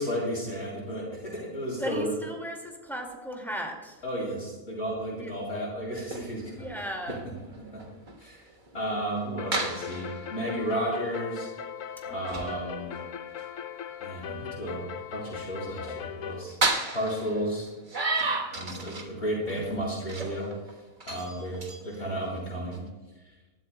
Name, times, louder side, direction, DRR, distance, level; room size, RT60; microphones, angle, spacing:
voice 1, 0.0-2.1 4.0-6.7 7.7-7.8 8.2-8.5 8.7-11.5 12.1-12.9 14.0-16.6 16.9-17.7 18.5-20.8 21.1-22.8, equal, 50° left, -3 dB, 3.0 m, -33 dB
voice 2, 1.8-4.0 5.1-5.3 6.5-7.3 12.1-12.6 19.3-19.7, equal, ahead, 1 dB, 2.1 m, -36 dB
sound 1, 6.0-9.3 9.5-10.5 10.8-10.9 11.4-11.6 12.3-12.6 12.9-13.0 13.4-13.5 14.3-14.4 15.4-15.5 16.4-19.2 19.5-19.7 20.1-20.7 21.0-22.9, right 3 dB, 35° right, 1.4 m, -33 dB
sound 2, 9.4-16.4, left 8 dB, 70° left, 1.0 m, -39 dB
20.0 x 13.0 x 2.2 m, 1.2 s
omnidirectional pair, 1.4 m